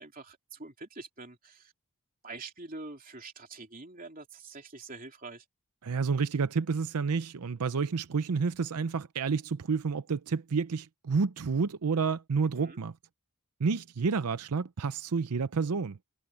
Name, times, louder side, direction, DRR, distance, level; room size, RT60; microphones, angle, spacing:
voice 1, 0.0-1.7 2.2-5.4 12.4-12.8, right 3 dB, 40° right, 3.0 m, -45 dB
voice 2, 5.8-12.9 13.6-16.0, right 5 dB, 90° right, 0.6 m, -30 dB
head